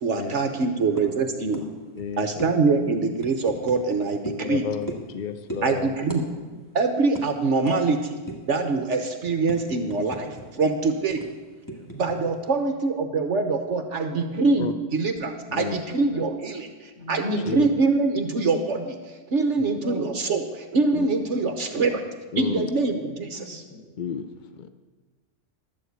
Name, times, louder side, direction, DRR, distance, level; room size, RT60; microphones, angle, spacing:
voice 1, 0.0-1.6 2.2-4.6 5.6-6.3 6.7-8.1 8.5-11.3 12.0-19.0 19.3-22.0 22.4-23.6, right 3 dB, 55° right, 6 dB, 1.1 m, -24 dB
sound 1, 1.0-1.2 1.5-1.7 1.9-2.1 2.4-2.5 3.2-3.8 4.2-4.4 4.9-5.1 5.5-5.7 6.1-6.2 6.5-6.7 7.1-7.2 7.7-7.8 8.3-8.5 8.9-10.4 10.7-10.8 11.2-12.2, right 1 dB, 15° left, 1.7 m, -35 dB
voice 2, 1.9-2.4 4.4-6.0 14.6-14.7 15.5-15.8 16.1-16.3 17.4-17.7 20.9-21.1 22.3-22.7 24.0-24.3 24.6-24.7, left 7 dB, 65° left, 9 dB, 0.4 m, -31 dB
voice 3, 2.6-3.1 10.5-10.7 11.7-12.0 14.1-14.3 17.0-17.6 19.8-20.1 21.3-21.4 21.7-22.0 23.3-23.8, equal, 45° left, -3 dB, 4.4 m, -36 dB
12.0 x 7.6 x 8.0 m, 1.3 s
omnidirectional pair, 1.6 m